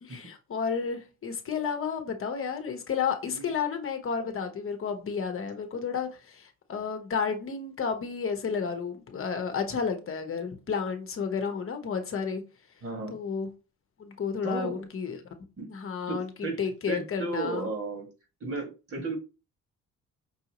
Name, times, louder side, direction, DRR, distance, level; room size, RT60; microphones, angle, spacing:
voice 1, 0.0-12.4 13.1-13.5 14.0-15.2 15.7-17.7, left 6 dB, 45° left, 0.9 m, -32 dB
voice 2, 12.8-13.2 14.4-14.8 15.6-15.7 16.1-16.6 16.9-18.1 18.4-19.2, right 3 dB, 50° right, 1.9 m, -34 dB
5.6 x 2.7 x 2.9 m
cardioid pair, 90°, 30 cm